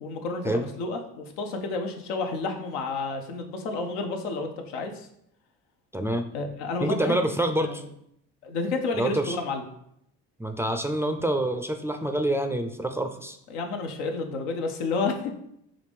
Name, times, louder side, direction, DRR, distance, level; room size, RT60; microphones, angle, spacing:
voice 1, 0.0-5.1 6.3-7.1 7.6-7.9 8.4-9.6 13.5-15.4, left 3 dB, 90° left, 4 dB, 0.7 m, -30 dB
voice 2, 5.9-6.3 6.8-7.8 9.0-9.4 10.4-13.4, right 1 dB, 10° right, 6 dB, 0.3 m, -26 dB
4.9 x 2.6 x 3.4 m, 0.74 s
supercardioid pair, 65°, 35 cm